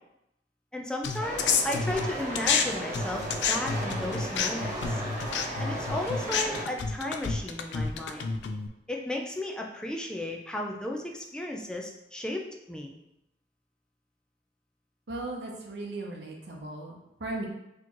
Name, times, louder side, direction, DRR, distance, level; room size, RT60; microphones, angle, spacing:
voice 1, 0.7-5.0 5.6-8.3 8.9-12.9, left 1 dB, 5° left, 0 dB, 0.4 m, -34 dB
sound 1, 1.0-2.6 2.9-8.7, left 5 dB, 80° left, 0.4 m, -29 dB
sound 2, 1.2-6.6, right 1 dB, 45° right, 1.3 m, -35 dB
voice 2, 15.1-17.5, right 2 dB, 70° right, -1 dB, 0.7 m, -37 dB
4.2 x 3.0 x 2.9 m, 0.86 s
head